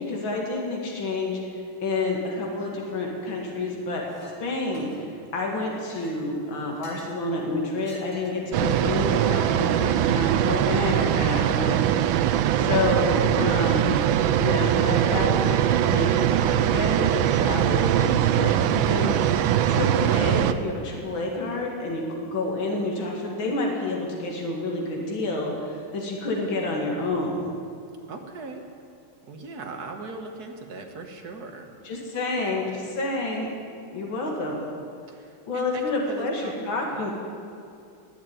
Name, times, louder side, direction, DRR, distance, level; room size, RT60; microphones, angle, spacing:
voice 1, 0.0-4.0 4.4-11.9 12.5-19.1 19.7-27.4 31.8-33.5 33.9-34.6 35.5-37.1, left 2 dB, 65° left, -1 dB, 3.0 m, -29 dB
Chink clink, 4.1-4.4 4.7-5.2 5.7-7.2 7.8-8.5, left 2 dB, 85° left, 3.6 m, -47 dB
sound 1, 8.5-20.5, right 10 dB, 75° right, 1.3 m, -22 dB
voice 2, 28.1-28.6 29.2-31.7 32.1-32.9 35.1-37.1, right 3 dB, 50° right, 4 dB, 1.8 m, -40 dB
20.0 x 7.1 x 9.1 m, 2.5 s
omnidirectional pair, 2.4 m